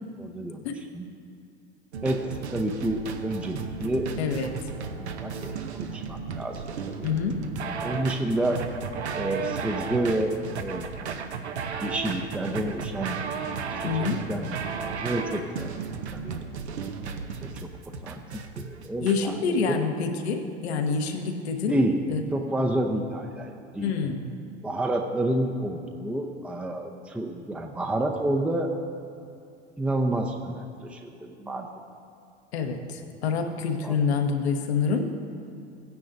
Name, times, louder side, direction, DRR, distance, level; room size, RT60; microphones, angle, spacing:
voice 1, 0.2-0.6 0.9-1.1 2.0-4.1 5.0-7.1 7.8-8.6 9.1-10.9 11.8-13.2 13.7-14.4 14.8-15.8 16.1-16.4 17.4-17.7 18.0-18.2 18.6-19.3 19.6-19.9 21.7-22.0 22.3-23.9 24.6-28.7 29.8-31.7 33.8-34.0, right 1 dB, 5° right, 3 dB, 0.7 m, -29 dB
sound 1, 1.9-19.2, right 5 dB, 75° right, 0.9 m, -34 dB
voice 2, 4.2-4.5 7.0-7.4 13.8-14.2 19.0-21.8 22.1-22.2 23.8-24.3 32.5-35.1, left 5 dB, 70° left, 5 dB, 1.2 m, -27 dB
16.5 x 9.6 x 2.6 m, 2.4 s
figure-of-eight pair, 80°, 34 cm